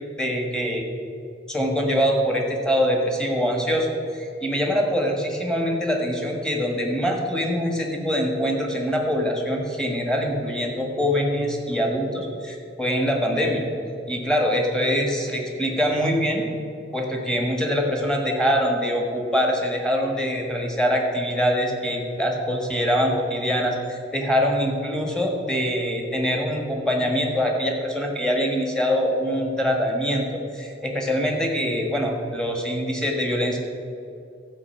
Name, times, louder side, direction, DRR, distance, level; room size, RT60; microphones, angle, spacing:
voice 1, 0.2-0.8 1.5-13.7 14.1-16.5 16.9-33.6, equal, 5° left, 0 dB, 1.6 m, -24 dB
12.5 x 5.2 x 7.7 m, 2.6 s
head